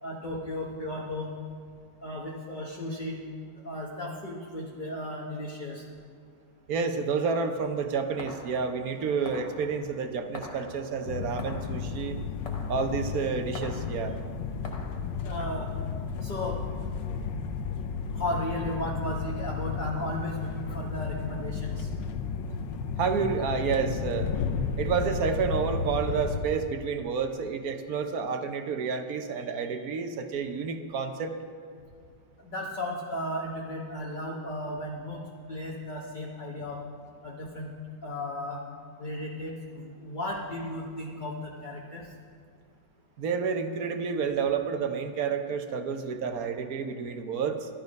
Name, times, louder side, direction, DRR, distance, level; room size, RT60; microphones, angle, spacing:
voice 1, 0.0-1.3 2.0-3.2 3.6-5.8 15.2-15.7 16.2-16.6 18.1-21.9 32.4-36.8 37.2-37.7 38.0-38.6 39.0-42.1, left 1 dB, 30° left, -2 dB, 1.0 m, -35 dB
voice 2, 6.7-12.2 12.7-14.2 23.0-24.3 24.8-31.3 43.2-47.7, right 5 dB, 60° right, 7 dB, 1.2 m, -30 dB
sound 1, 7.6-15.0, left 2 dB, 65° left, 0.3 m, -45 dB
sound 2, 11.0-26.4, left 5 dB, 80° left, 1.4 m, -33 dB
12.0 x 11.5 x 5.2 m, 2.2 s
omnidirectional pair, 2.0 m